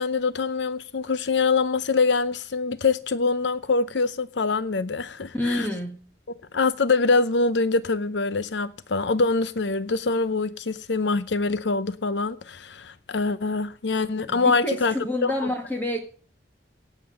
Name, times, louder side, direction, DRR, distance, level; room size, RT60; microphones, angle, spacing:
voice 1, 0.0-5.7 6.5-14.9 15.2-15.5, left 4 dB, 80° left, 0.7 m, -24 dB
voice 2, 5.3-6.0 14.3-16.0, left 1 dB, 10° left, 1.7 m, -28 dB
17.5 x 7.5 x 7.7 m
head